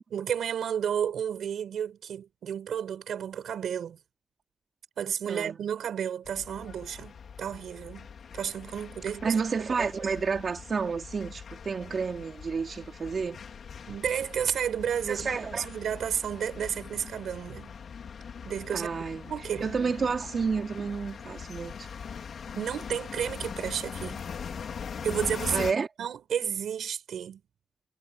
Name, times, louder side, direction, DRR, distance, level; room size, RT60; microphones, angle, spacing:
voice 1, 0.1-4.0 5.0-8.1 8.3-9.4 13.9-17.7 18.4-18.9 19.3-20.2 22.6-24.2 25.0-25.7 26.0-27.4, right 8 dB, 90° right, 5.2 m, -32 dB
voice 2, 5.3-5.6 9.2-13.4 15.1-15.7 18.7-19.3 19.6-21.9 25.5-25.9, right 5 dB, 40° right, 4.1 m, -30 dB
sound 1, 6.2-25.7, left 6 dB, 55° left, 3.0 m, -41 dB
wide cardioid pair, 175°, 0 cm